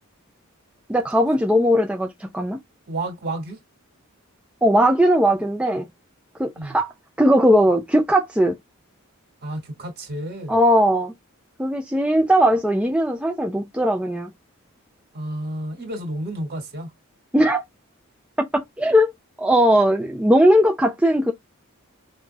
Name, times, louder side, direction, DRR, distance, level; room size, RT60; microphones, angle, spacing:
voice 1, 0.9-2.6 4.6-5.9 6.4-6.9 7.2-8.6 10.5-11.1 11.6-14.3 17.3-17.6 18.4-19.1 19.4-21.3, equal, 5° right, 0.4 m, -18 dB
voice 2, 2.9-3.6 6.5-6.8 9.4-10.5 15.1-16.9, right 1 dB, 50° right, 2.0 m, -31 dB
5.7 x 2.6 x 2.3 m
head